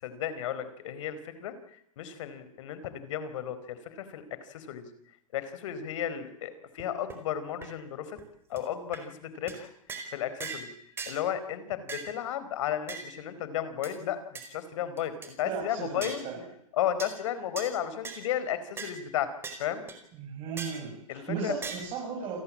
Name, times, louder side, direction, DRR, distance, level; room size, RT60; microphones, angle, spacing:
voice 1, 0.0-1.5 2.0-4.9 5.3-8.2 8.5-9.7 10.1-10.7 11.1-14.2 14.5-16.3 16.8-19.3 19.6-19.8 21.1-21.6, left 10 dB, 60° left, 13 dB, 4.7 m, -33 dB
sound 1, 6.8-6.9 7.1-7.2 7.6-7.7 8.2-8.3 8.6-8.7 8.9-9.0 9.5-9.6 9.9-10.1 10.4-10.7 11.0-11.2 11.9-12.1 12.9-13.1 13.8-13.9 14.4-14.5 15.0-15.3 16.0-16.2 17.0-17.1 17.6-17.7 18.0-18.3 18.8-18.9 19.4-19.6 19.9-20.0 20.6-20.8 21.6-21.8, right 5 dB, 15° right, 4.7 m, -39 dB
voice 2, 15.4-16.4 20.1-22.4, right 6 dB, 30° right, 0 dB, 7.6 m, -36 dB
29.0 x 18.5 x 8.8 m, 0.74 s
supercardioid pair, 155°, 18 cm